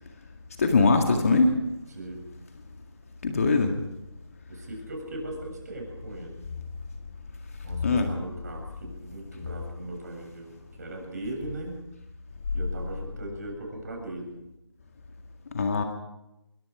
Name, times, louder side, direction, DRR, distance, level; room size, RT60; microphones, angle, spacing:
voice 1, 0.6-1.5 3.2-3.7 7.8-8.1 15.5-15.8, left 3 dB, 30° left, 4 dB, 1.9 m, -21 dB
voice 2, 1.9-2.3 4.5-6.5 7.6-11.8 12.5-14.3, right 1 dB, 35° right, 1 dB, 7.5 m, -39 dB
26.5 x 23.0 x 4.9 m, 0.91 s
figure-of-eight pair, 165°, 15 cm